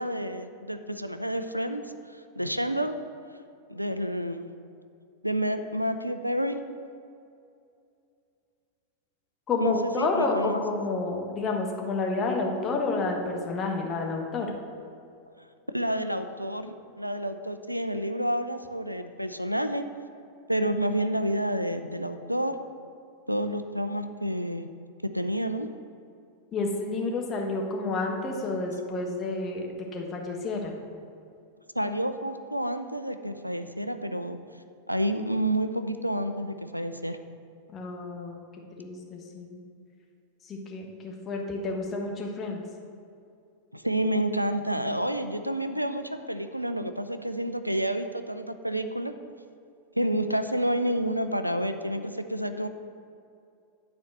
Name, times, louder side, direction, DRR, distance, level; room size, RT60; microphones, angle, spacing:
voice 1, 0.0-1.8 2.1-2.9 3.7-4.5 5.2-6.6 9.6-10.6 15.7-19.9 20.5-22.5 23.3-24.7 25.1-25.7 31.7-34.4 34.9-37.2 43.7-49.1 50.0-52.7, right 1 dB, 90° right, 9 dB, 0.4 m, -29 dB
voice 2, 9.5-14.5 26.5-29.7 29.9-30.7 37.7-38.4 38.8-39.6 40.4-42.6, left 3 dB, 25° left, 1 dB, 1.3 m, -30 dB
9.5 x 4.3 x 6.5 m, 2.5 s
figure-of-eight pair, 90°, 0 cm